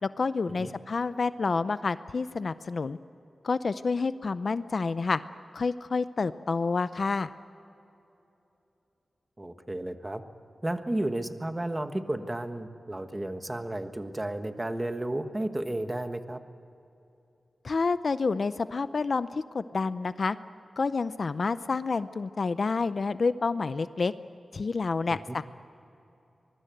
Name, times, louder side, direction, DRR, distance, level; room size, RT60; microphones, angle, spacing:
voice 1, 0.0-3.0 3.4-5.2 5.5-7.3 17.6-20.4 20.8-24.1 24.5-25.4, left 4 dB, 55° left, 13 dB, 0.6 m, -28 dB
voice 2, 9.4-10.2 10.6-16.4 25.1-25.4, right 1 dB, 20° right, 8 dB, 1.4 m, -33 dB
24.0 x 22.5 x 9.2 m, 2.9 s
wide cardioid pair, 115°, 0 cm